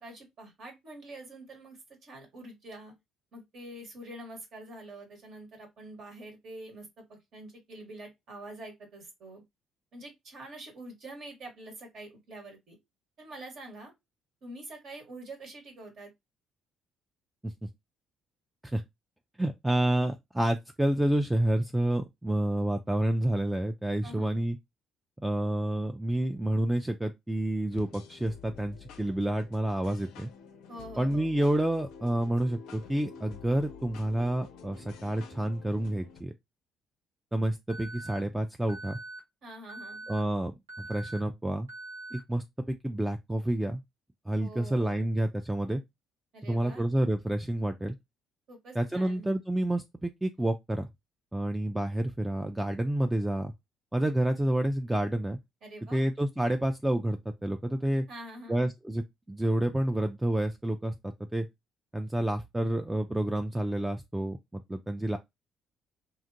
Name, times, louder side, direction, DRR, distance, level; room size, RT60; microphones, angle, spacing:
voice 1, 0.0-2.9 3.3-9.4 9.9-12.8 13.2-13.9 14.4-16.1 24.0-24.4 30.7-31.3 39.4-40.1 44.4-45.1 46.3-46.9 48.5-49.3 55.6-56.0 58.1-58.7, right 1 dB, 55° right, 1.2 m, -46 dB
voice 2, 19.4-24.6 25.2-30.3 31.0-36.3 37.3-39.0 40.1-40.5 40.8-41.7 42.1-43.8 44.3-45.8 46.4-48.0 48.7-50.9 51.3-53.5 53.9-55.4 55.9-58.1 58.5-60.9 61.3-61.5 61.9-64.4 64.7-65.2, right 1 dB, 10° right, 0.3 m, -29 dB
sound 1, 27.7-36.2, left 6 dB, 65° left, 0.4 m, -49 dB
Alarm, 37.7-38.2 38.7-39.2 39.7-40.2 40.7-41.2 41.7-42.2, right 2 dB, 85° right, 0.7 m, -43 dB
2.8 x 2.4 x 2.5 m
figure-of-eight pair, 45°, 0 cm